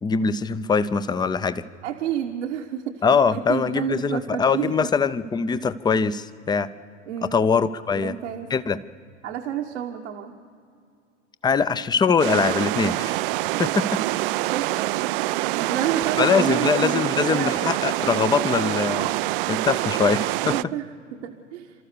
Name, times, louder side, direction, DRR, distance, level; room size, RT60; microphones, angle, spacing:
voice 1, 0.0-1.6 3.0-6.7 7.2-8.2 8.5-8.8 11.4-13.2 13.6-14.0 16.2-19.2 19.5-20.6, left 5 dB, 10° left, 14 dB, 0.6 m, -22 dB
voice 2, 1.8-3.0 3.3-4.9 7.1-7.4 7.9-8.5 9.2-10.3 13.4-13.6 14.5-17.6 20.5-20.9 21.1-21.7, right 10 dB, 70° right, 1 dB, 1.3 m, -30 dB
sound 1, 12.2-20.6, right 18 dB, 50° right, 0.5 m, -25 dB
29.0 x 13.5 x 6.8 m, 2.4 s
hypercardioid pair, 90°, 36 cm